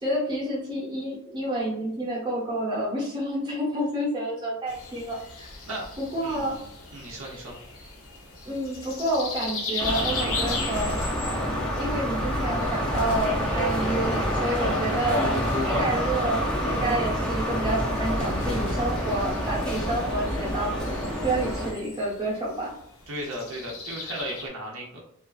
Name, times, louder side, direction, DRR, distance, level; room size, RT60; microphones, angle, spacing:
voice 1, 0.0-5.5 6.0-6.6 8.4-11.0 11.7-15.3 15.7-20.8 21.2-22.7, right 1 dB, 20° right, -6 dB, 0.8 m, -29 dB
sound 1, 4.7-24.5, left 3 dB, 70° left, 0.6 m, -39 dB
voice 2, 6.2-7.6 23.1-25.0, right 1 dB, 65° right, -2 dB, 0.6 m, -36 dB
sound 2, 9.8-21.7, equal, 5° left, 0.4 m, -27 dB
Gunshot gunfire, 10.7-12.0 12.9-14.2 15.1-16.5 18.4-19.7, left 1 dB, 85° left, 1.1 m, -43 dB
2.4 x 2.3 x 2.3 m, 0.70 s
head